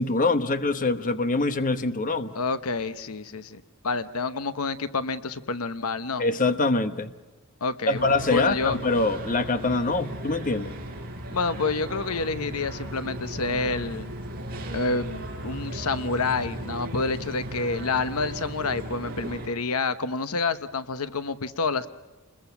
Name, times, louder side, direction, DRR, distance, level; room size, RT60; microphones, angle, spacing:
voice 1, 0.0-2.4 6.2-7.1 7.9-10.7, left 3 dB, 40° left, 10 dB, 1.1 m, -24 dB
voice 2, 2.3-6.2 7.6-8.8 11.3-14.1 14.7-21.9, left 4 dB, 80° left, 12 dB, 1.0 m, -28 dB
sound 1, 7.9-19.5, right 1 dB, 45° right, 4.5 m, -36 dB
29.0 x 21.5 x 5.9 m, 1.2 s
head